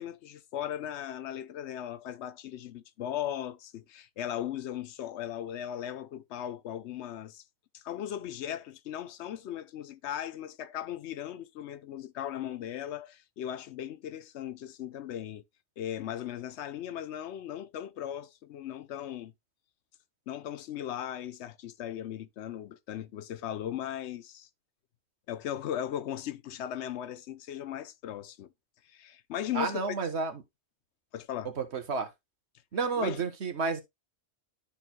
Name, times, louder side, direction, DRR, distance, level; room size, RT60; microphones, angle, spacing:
voice 1, 0.0-7.4 7.7-15.4 15.8-19.3 20.3-24.5 25.3-28.5 28.8-30.0 31.1-31.5 33.0-33.2, left 10 dB, 80° left, 0.9 m, -37 dB
voice 2, 29.5-30.4 31.6-32.1 32.7-33.8, right 4 dB, 75° right, 1.5 m, -31 dB
11.5 x 4.5 x 2.2 m
omnidirectional pair, 1.1 m